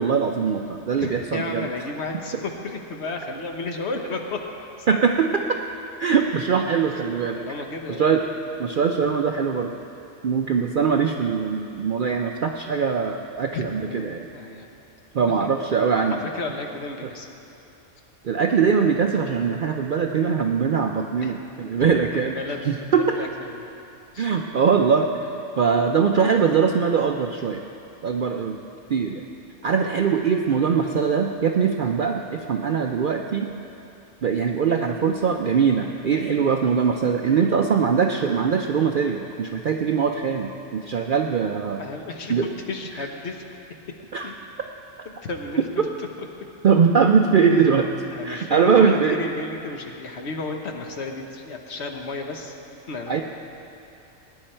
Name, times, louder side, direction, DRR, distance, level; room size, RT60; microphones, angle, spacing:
voice 1, 0.0-1.7 4.9-5.5 6.0-7.4 8.0-8.3 8.6-9.7 10.2-14.3 15.1-16.2 18.2-23.2 24.2-25.3 25.6-27.6 28.0-28.6 28.9-29.3 29.6-33.5 34.2-41.8 42.3-42.5 42.9-43.1 44.1-44.3 45.8-45.9 46.6-47.9 48.2-49.2 53.1-53.2, right 6 dB, 60° right, 3 dB, 0.5 m, -22 dB
voice 2, 1.0-4.4 4.8-4.9 7.4-8.1 13.5-14.7 15.4-15.5 16.2-17.3 21.2-21.4 21.8-21.9 22.1-22.9 23.1-23.7 24.1-24.3 36.3-36.5 37.3-37.7 41.8-42.3 42.7-43.4 44.2-44.3 45.0-45.9 48.1-52.5 52.9-53.2, left 3 dB, 55° left, 3 dB, 1.2 m, -33 dB
17.5 x 10.0 x 4.4 m, 2.8 s
omnidirectional pair, 1.4 m